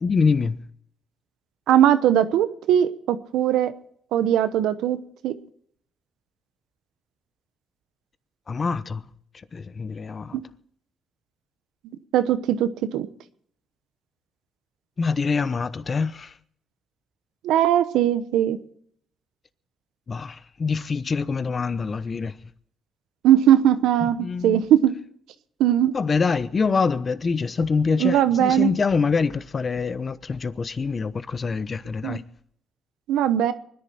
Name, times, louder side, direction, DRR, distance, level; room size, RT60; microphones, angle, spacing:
voice 1, 0.0-0.6 8.5-9.0 9.5-10.4 15.0-16.3 20.1-22.3 24.0-24.6 25.9-32.2, left 5 dB, 40° left, 0.9 m, -25 dB
voice 2, 1.7-3.7 4.1-5.0 5.2-5.3 10.3-10.4 12.1-13.1 17.4-18.6 23.2-24.9 25.6-25.9 28.0-28.7 32.0-32.2 33.1-33.5, right 11 dB, 90° right, 1.0 m, -20 dB
24.5 x 10.5 x 4.4 m
cardioid pair, 90°, 0 cm